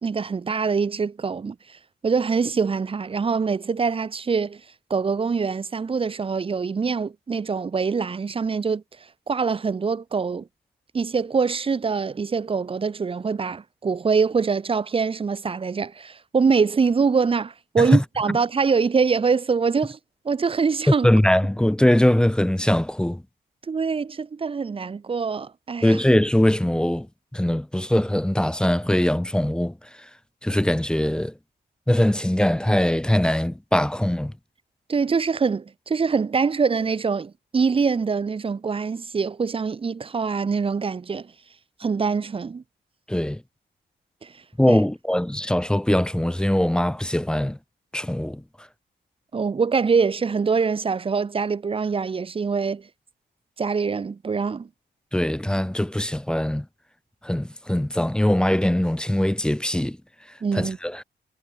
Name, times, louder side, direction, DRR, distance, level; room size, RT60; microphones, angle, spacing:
voice 1, 0.0-1.8 2.0-4.6 4.9-8.8 9.3-10.5 10.9-20.0 20.2-21.1 23.7-26.0 34.9-41.3 41.8-42.6 44.2-44.3 44.7-44.8 49.3-52.9 53.6-54.7 60.4-60.8, right 5 dB, 30° right, 1.1 m, -24 dB
voice 2, 21.0-23.2 25.8-27.1 27.3-29.7 30.4-31.3 31.9-34.3 43.1-43.4 44.6-47.6 47.9-48.4 55.1-56.6 57.2-60.0 60.5-61.0, left 1 dB, 5° left, 0.7 m, -21 dB
wide cardioid pair, 155°, 18 cm